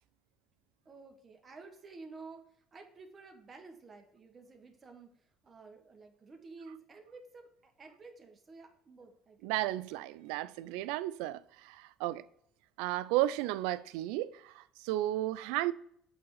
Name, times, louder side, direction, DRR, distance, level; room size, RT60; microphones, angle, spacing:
voice 1, 0.8-9.7, right 4 dB, 30° right, 1.3 m, -52 dB
voice 2, 9.4-12.2 12.8-15.7, right 15 dB, 90° right, 0.4 m, -33 dB
8.0 x 3.6 x 4.7 m
cardioid pair, 105°, 0 cm